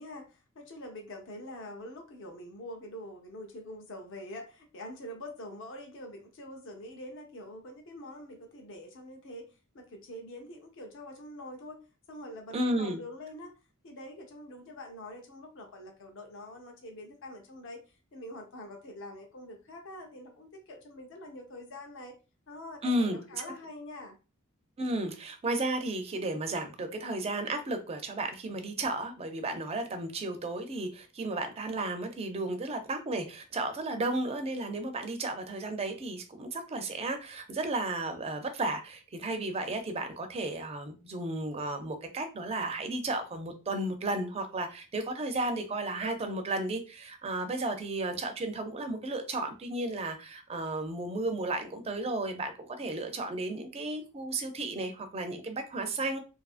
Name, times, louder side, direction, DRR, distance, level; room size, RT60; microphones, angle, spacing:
voice 1, 0.0-11.8 12.1-13.5 13.8-22.2 22.5-24.2, left 1 dB, 60° left, 3 dB, 0.6 m, -45 dB
voice 2, 12.5-13.0 22.8-23.4 24.8-56.2, right 2 dB, 30° right, 6 dB, 0.4 m, -33 dB
2.6 x 2.4 x 2.4 m, 0.32 s
head